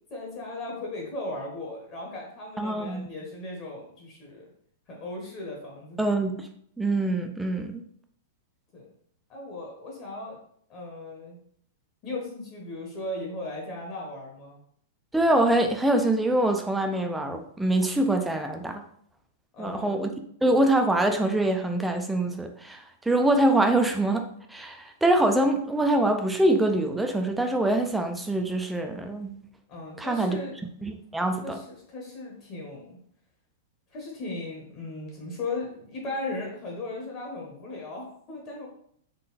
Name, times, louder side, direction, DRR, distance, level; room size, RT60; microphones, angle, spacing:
voice 1, 0.1-4.5 4.9-6.0 8.7-8.9 9.3-10.4 10.7-11.4 12.0-14.6 19.5-19.9 29.7-30.5 31.4-33.0 33.9-38.7, left 2 dB, 30° left, -1 dB, 1.0 m, -37 dB
voice 2, 2.6-3.1 6.0-6.5 6.8-7.8 15.1-18.8 19.6-20.1 20.4-24.2 24.5-29.4 30.0-30.4 30.8-31.6, right 1 dB, 5° right, 4 dB, 0.4 m, -24 dB
3.8 x 2.2 x 4.1 m, 0.64 s
supercardioid pair, 160°, 0 cm